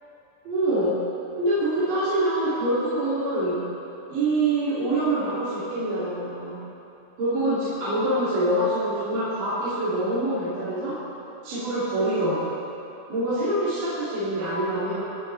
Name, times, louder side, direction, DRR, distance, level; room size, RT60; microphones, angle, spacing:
voice 1, 0.4-1.0 1.4-3.6 4.1-6.6 7.2-11.0 11.4-12.5 13.1-15.0, right 1 dB, 55° right, -12 dB, 4.5 m, -25 dB
28.5 x 9.8 x 3.5 m, 2.9 s
omnidirectional pair, 4.9 m